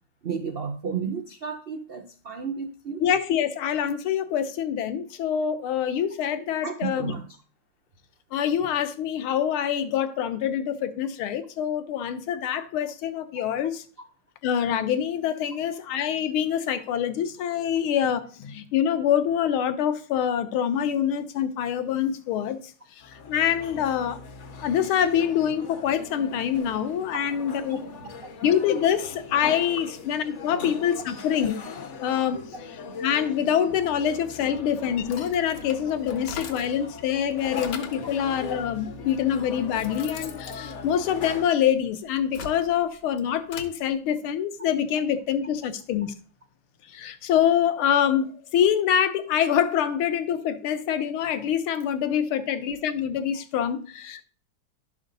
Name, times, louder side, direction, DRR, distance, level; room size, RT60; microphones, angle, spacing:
voice 1, 0.2-3.0 6.6-7.3 27.7-27.9, right 6 dB, 85° right, 0.5 m, -32 dB
voice 2, 3.0-7.1 8.3-13.8 14.4-22.6 23.0-24.2 24.6-27.8 28.4-31.6 32.0-32.5 33.0-46.1 46.9-54.2, left 9 dB, 85° left, 1.7 m, -25 dB
sound 1, 23.0-41.5, left 4 dB, 50° left, 0.9 m, -40 dB
sound 2, 35.0-36.8 37.2-38.1 38.9-39.0 39.5-41.6 42.1-43.8, left 5 dB, 65° left, 1.8 m, -41 dB
11.0 x 6.3 x 3.9 m
omnidirectional pair, 2.3 m